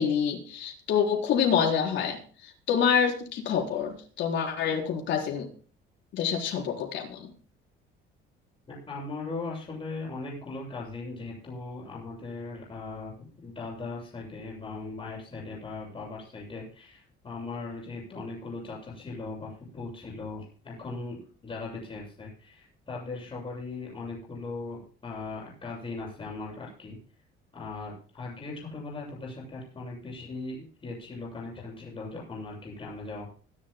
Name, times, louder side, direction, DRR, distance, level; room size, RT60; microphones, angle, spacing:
voice 1, 0.0-2.2 2.7-5.5 6.1-7.3, left 7 dB, 65° left, 0 dB, 4.5 m, -27 dB
voice 2, 8.7-27.0 27.5-33.3, left 3 dB, 25° left, -3 dB, 7.7 m, -39 dB
25.0 x 11.5 x 2.3 m, 0.42 s
cardioid pair, 130°, 21 cm